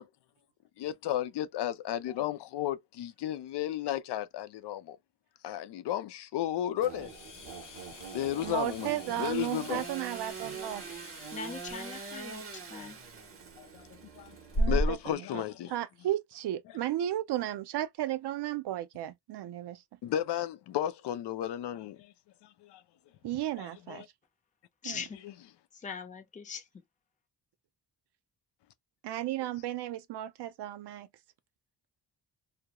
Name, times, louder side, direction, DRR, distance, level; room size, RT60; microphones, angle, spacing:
voice 1, 0.8-5.0 5.4-7.1 8.1-8.9 9.2-9.9 13.6-14.4 14.7-15.7 20.0-22.1 22.6-22.8 23.9-24.0 25.2-25.3, left 12 dB, 80° left, 0.5 m, -33 dB
Engine / Sawing, 6.8-15.0, right 6 dB, 35° right, 0.6 m, -44 dB
sound 1, 6.9-15.1, equal, 50° left, 0.9 m, -37 dB
voice 2, 8.4-10.8 14.6-19.8 23.2-24.0 24.8-25.0 29.0-31.1, right 13 dB, 75° right, 0.5 m, -34 dB
voice 3, 11.3-13.0 24.8-25.2 25.8-26.6, left 5 dB, 20° left, 0.5 m, -41 dB
2.3 x 2.0 x 2.8 m
wide cardioid pair, 180°, 40 cm